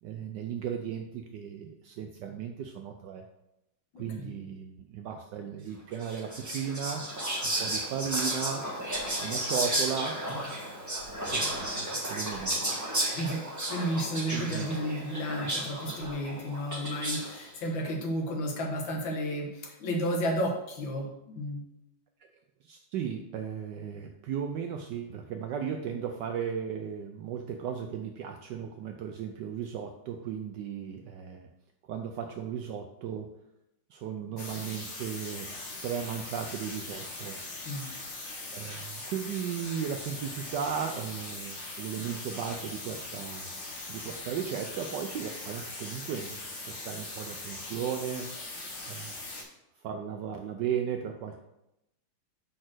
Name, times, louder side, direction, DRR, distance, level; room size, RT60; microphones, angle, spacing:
voice 1, 0.0-3.3 4.0-7.1 7.4-8.7 9.2-10.2 11.3-12.7 14.3-14.7 22.6-31.5 31.9-33.3 33.9-35.5 35.8-37.4 38.5-43.5 43.9-48.3 48.9-49.2 49.8-51.4, right 8 dB, 75° right, 5 dB, 1.0 m, -36 dB
voice 2, 3.9-4.3 13.1-21.6 37.6-37.9, equal, 70° left, 1 dB, 1.9 m, -32 dB
Whispering, 6.0-17.4, right 1 dB, 10° right, 1.1 m, -33 dB
sound 1, 34.4-49.4, left 2 dB, 40° left, 1.2 m, -41 dB
5.1 x 4.3 x 6.0 m, 0.87 s
omnidirectional pair, 2.2 m